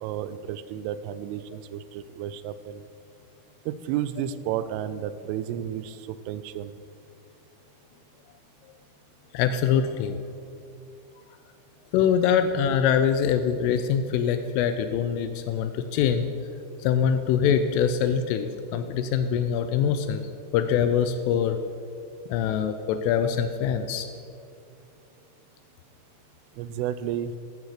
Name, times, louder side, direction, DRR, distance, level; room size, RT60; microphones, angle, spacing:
voice 1, 0.0-2.9 3.7-6.7 26.6-27.3, right 10 dB, 85° right, 14 dB, 3.1 m, -32 dB
voice 2, 9.3-10.2 11.9-16.3 16.8-20.2 20.5-21.6 22.3-24.1, left 8 dB, 85° left, 9 dB, 3.1 m, -24 dB
15.5 x 12.5 x 4.9 m, 2.5 s
omnidirectional pair, 5.8 m